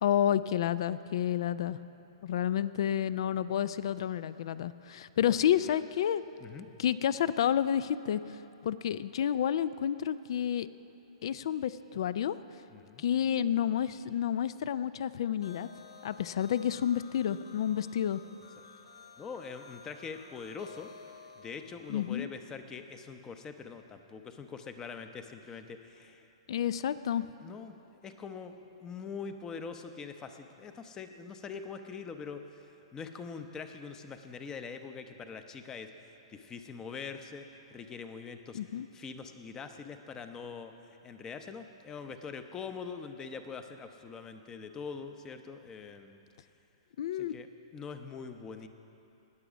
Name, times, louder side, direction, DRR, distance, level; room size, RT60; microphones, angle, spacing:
voice 1, 0.0-1.8 2.2-6.2 6.8-8.4 8.6-10.7 11.2-12.4 13.0-15.7 16.0-18.2 21.9-22.3 26.5-27.3 38.5-38.9 47.0-47.4, left 10 dB, 65° left, 16 dB, 0.4 m, -30 dB
voice 2, 5.2-5.8 6.4-6.7 12.7-13.0 19.2-20.9 21.4-26.3 27.4-27.7 28.0-28.5 28.8-35.9 36.3-38.6 38.9-40.7 41.0-46.2 47.1-48.7, left 5 dB, 20° left, 8 dB, 0.7 m, -43 dB
sound 1, 15.4-22.3, left 5 dB, 80° left, 0.9 m, -53 dB
19.5 x 7.1 x 5.1 m, 2.9 s
hypercardioid pair, 125°, 3 cm